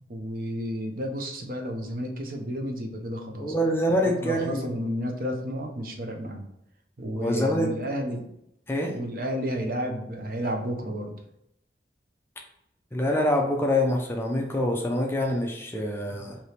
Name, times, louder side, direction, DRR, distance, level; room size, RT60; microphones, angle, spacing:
voice 1, 0.1-3.5 4.2-6.5 7.0-8.3 8.8-11.2, equal, 50° right, 2 dB, 0.6 m, -31 dB
voice 2, 3.4-4.8 7.2-7.7 8.7-8.9 12.9-16.4, left 1 dB, 15° left, 1 dB, 0.5 m, -25 dB
3.3 x 2.9 x 4.3 m, 0.81 s
head